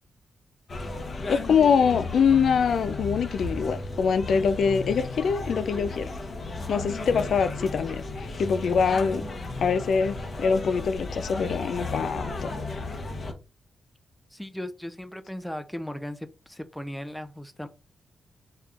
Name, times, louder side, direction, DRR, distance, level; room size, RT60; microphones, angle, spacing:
sound 1, 0.7-13.3, left 3 dB, 45° left, 0.9 m, -34 dB
voice 1, 1.3-6.1 6.7-9.2 9.6-12.5, left 6 dB, 70° left, 0.3 m, -24 dB
voice 2, 14.3-17.7, left 1 dB, 5° left, 0.4 m, -37 dB
4.2 x 3.5 x 2.4 m
wide cardioid pair, 110°, 0 cm